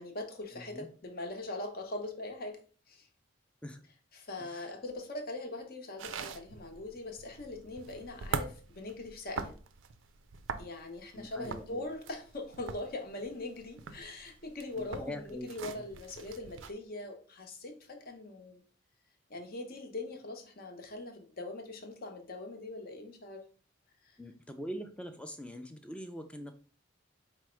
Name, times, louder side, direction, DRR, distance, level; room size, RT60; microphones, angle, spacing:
voice 1, 0.0-2.6 2.9-3.1 4.1-9.5 10.6-18.6 19.3-23.4 24.0-24.2, left 2 dB, 50° left, 0.8 m, -42 dB
voice 2, 0.5-0.9 3.6-3.8 4.4-4.7 11.1-11.8 14.8-15.9 24.2-26.5, equal, 5° left, 0.4 m, -43 dB
sound 1, 6.0-16.7, right 5 dB, 85° right, 0.4 m, -43 dB
4.6 x 2.1 x 4.3 m
head